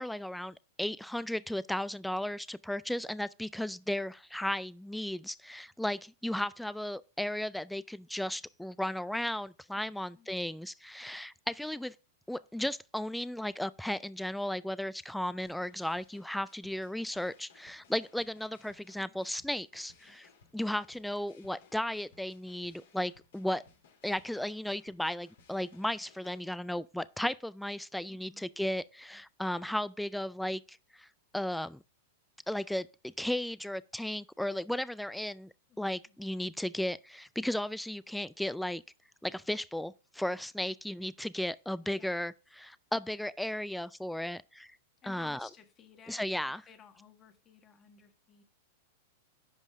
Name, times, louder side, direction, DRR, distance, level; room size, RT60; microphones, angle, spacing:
voice 1, 0.0-11.9 12.3-23.6 24.0-31.1 31.3-31.8 32.5-38.8 39.2-44.8 45.1-45.5 46.1-46.6, left 1 dB, ahead, 0.3 m, -35 dB
voice 2, 9.7-10.4 19.0-19.3 28.1-28.5 35.7-35.8 36.1-36.2 41.9-42.1 45.0-48.4, left 7 dB, 30° left, 1.5 m, -57 dB
sound 1, 15.4-26.4, left 5 dB, 75° left, 2.8 m, -63 dB
10.5 x 5.4 x 3.6 m
hypercardioid pair, 120°, 0 cm